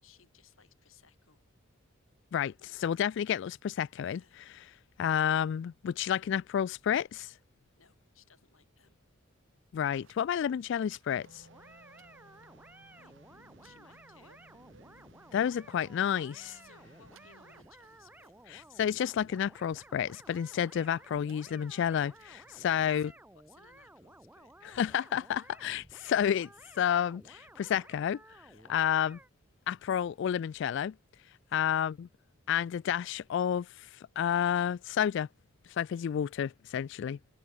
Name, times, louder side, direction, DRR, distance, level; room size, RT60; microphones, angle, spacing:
voice 1, 0.0-1.4 4.0-4.4 7.8-9.0 12.9-13.2 13.6-14.4 16.4-18.8 22.6-24.8 28.5-28.7 31.5-31.7, left 6 dB, 90° left, 4.5 m, -63 dB
voice 2, 2.3-4.4 5.0-7.3 9.7-11.5 15.3-16.6 18.5-23.1 24.6-26.5 26.8-28.2 28.7-29.2 29.7-30.9 31.5-32.1 32.5-33.9 34.2-35.3 35.8-37.2, left 9 dB, 60° left, 0.3 m, -30 dB
sound 1, 10.0-23.0, right 5 dB, 85° right, 4.9 m, -68 dB
sound 2, 11.1-17.6, right 2 dB, 65° right, 6.8 m, -59 dB
sound 3, 11.5-29.3, right 1 dB, 10° right, 1.5 m, -56 dB
open air
head